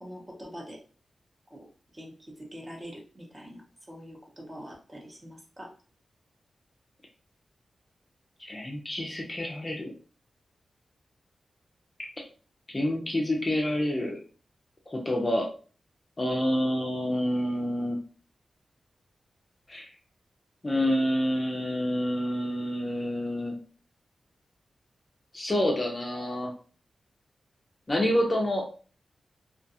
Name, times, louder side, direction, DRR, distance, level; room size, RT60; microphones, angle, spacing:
voice 1, 0.0-0.8 1.5-1.7 1.9-5.7, equal, 25° right, -1 dB, 0.7 m, -44 dB
voice 2, 8.5-9.9 12.7-14.2 14.9-15.5 16.2-18.0 19.7-19.9 20.6-23.5 25.3-26.5 27.9-28.6, left 1 dB, 25° left, 0 dB, 0.5 m, -28 dB
2.4 x 2.3 x 2.7 m, 0.39 s
wide cardioid pair, 135°, 0 cm